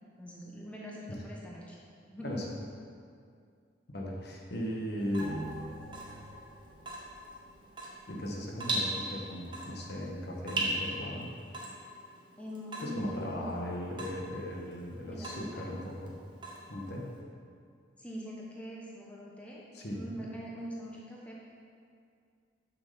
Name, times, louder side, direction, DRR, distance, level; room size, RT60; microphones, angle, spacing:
voice 1, 0.0-1.8 2.1-2.4 12.4-13.7 15.1-15.6 18.0-21.4, equal, 5° left, -4 dB, 0.9 m, -43 dB
voice 2, 3.9-5.4 8.1-11.3 12.8-16.1 16.7-17.1 19.7-20.0, equal, 55° left, -1 dB, 1.1 m, -37 dB
Water tap faucet / Drip, 5.0-17.2, right 1 dB, 25° right, 1.0 m, -40 dB
sound 1, 5.2-8.1 8.4-8.5, right 2 dB, 70° right, 1.3 m, -45 dB
6.3 x 6.2 x 5.4 m, 2.3 s
head